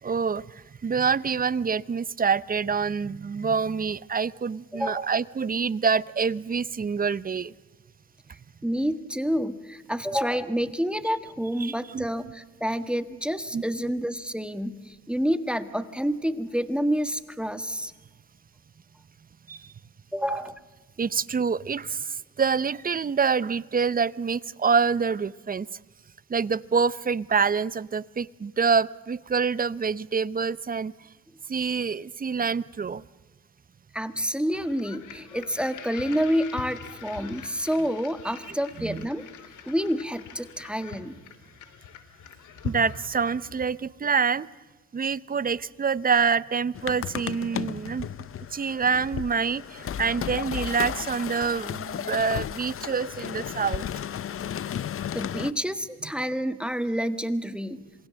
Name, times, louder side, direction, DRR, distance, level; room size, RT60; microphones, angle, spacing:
voice 1, 0.0-7.5 11.6-12.3 13.5-13.6 19.5-19.7 20.3-20.4 21.0-25.7 26.3-30.9 31.5-33.1 38.8-39.1 42.6-44.5 44.9-48.2 48.5-53.9, right 5 dB, 30° right, 19 dB, 0.7 m, -26 dB
voice 2, 4.7-5.1 8.6-17.9 20.1-20.5 33.9-39.2 39.6-41.2 55.1-57.8, equal, 5° right, 10 dB, 1.6 m, -28 dB
sound 1, 34.5-43.8, left 7 dB, 80° left, 2.8 m, -43 dB
sound 2, 46.7-55.5, left 9 dB, 45° left, 0.8 m, -34 dB
27.5 x 20.0 x 7.6 m, 1.3 s
cardioid pair, 90°, 30 cm